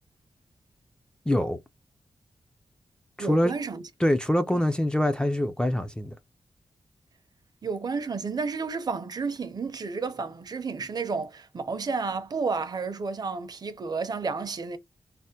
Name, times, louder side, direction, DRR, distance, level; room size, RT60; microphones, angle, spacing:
voice 1, 1.3-1.6 3.2-3.5 4.0-6.1, left 1 dB, 10° left, 0.3 m, -24 dB
voice 2, 3.2-3.8 4.5-4.6 7.6-14.8, right 4 dB, 40° right, 0.5 m, -31 dB
3.3 x 2.1 x 2.7 m
wide cardioid pair, 160°, 10 cm